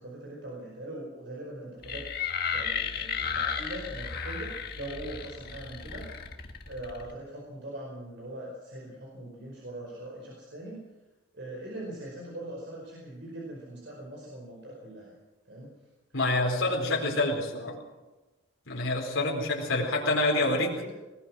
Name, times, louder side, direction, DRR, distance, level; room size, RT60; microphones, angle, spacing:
voice 1, 0.0-2.1 2.5-6.1 6.7-10.9 11.3-15.1 15.5-15.7 16.4-17.3 17.6-17.8 19.2-19.8 20.4-21.0, right 1 dB, 60° right, -3 dB, 5.1 m, -41 dB
sound 1, 1.8-7.1, left 6 dB, 50° left, 1.7 m, -34 dB
voice 2, 16.1-17.7 18.7-20.7, left 2 dB, 80° left, -1 dB, 4.4 m, -27 dB
20.5 x 20.0 x 6.3 m, 1.1 s
head